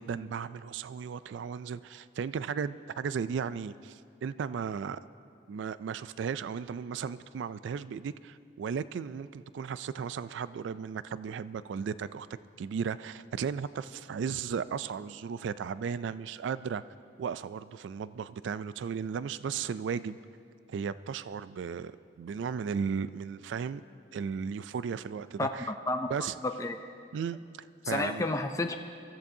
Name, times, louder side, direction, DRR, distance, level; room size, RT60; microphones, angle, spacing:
voice 1, 0.0-5.0 5.5-12.3 12.6-16.8 17.2-20.2 20.7-21.9 22.2-23.8 24.1-25.7 26.1-26.3 27.1-28.3, right 6 dB, 80° right, 15 dB, 0.3 m, -35 dB
voice 2, 26.4-26.8 27.8-28.8, left 2 dB, 15° left, 6 dB, 0.4 m, -30 dB
23.5 x 14.0 x 2.7 m, 2.4 s
head